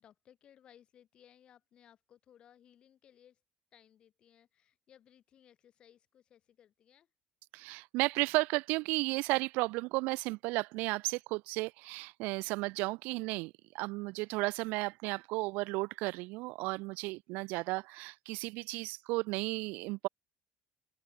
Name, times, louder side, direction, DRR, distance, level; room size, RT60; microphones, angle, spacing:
voice 1, 0.0-3.4 3.7-7.1, left 10 dB, 35° left, 2.6 m, -62 dB
voice 2, 7.5-20.1, right 24 dB, 75° right, 0.4 m, -34 dB
open air
cardioid pair, 175°, 3 cm